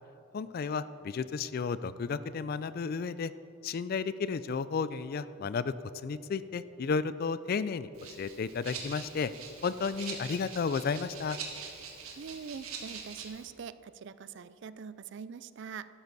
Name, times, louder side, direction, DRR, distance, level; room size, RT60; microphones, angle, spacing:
voice 1, 0.3-3.3 3.6-5.7 6.0-7.9 8.2-9.3 9.6-11.4, left 5 dB, 45° left, 15 dB, 0.3 m, -33 dB
Rattle (instrument), 7.9-13.5, right 5 dB, 85° right, 1.6 m, -44 dB
voice 2, 12.2-15.9, right 6 dB, 55° right, 15 dB, 0.4 m, -43 dB
12.0 x 11.0 x 4.0 m, 2.9 s
head